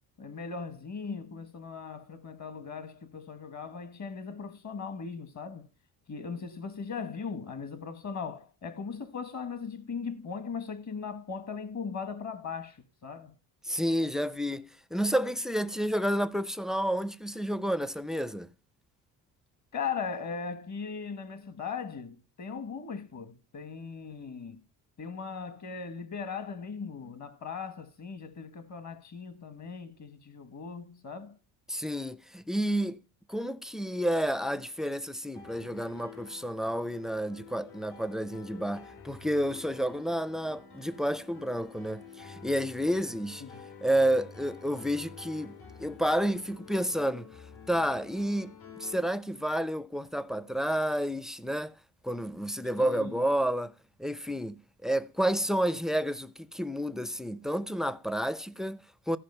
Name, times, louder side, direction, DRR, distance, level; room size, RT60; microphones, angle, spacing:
voice 1, 0.2-5.7 6.1-13.3 19.7-24.6 25.0-31.4 43.4-43.7 52.8-53.2, left 5 dB, 40° left, 1.3 m, -39 dB
voice 2, 13.6-18.5 31.7-33.0 33.3-43.4 43.8-47.3 47.7-51.7 52.0-53.7 54.0-59.2, equal, ahead, 0.4 m, -30 dB
Piano, 35.3-49.1, left 6 dB, 80° left, 5.9 m, -49 dB
14.5 x 5.2 x 5.4 m
cardioid pair, 110°, 42 cm